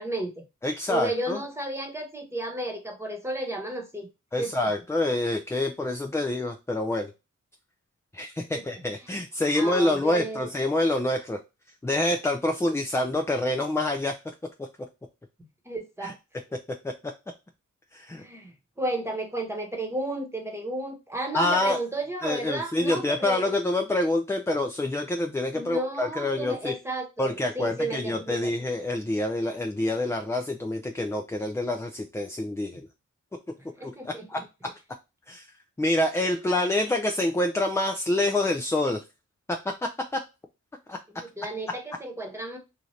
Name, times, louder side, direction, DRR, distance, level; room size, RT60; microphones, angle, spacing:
voice 1, 0.0-0.4 0.9-4.1 4.4-4.5 9.0-9.1 9.5-10.5 15.6-16.2 18.2-23.4 25.5-28.5 32.7-32.8 33.8-34.4 41.2-42.6, right 1 dB, 10° right, 1.1 m, -33 dB
voice 2, 0.6-1.4 4.3-7.1 8.1-11.4 11.8-14.2 14.6-14.7 16.0-16.1 16.8-17.1 17.9-18.2 21.3-21.8 22.2-26.7 27.2-32.8 33.8-34.7 35.3-35.5 35.8-39.0 40.1-40.2 40.9-41.0, left 1 dB, 10° left, 0.4 m, -27 dB
2.8 x 2.5 x 3.1 m
cardioid pair, 50°, 31 cm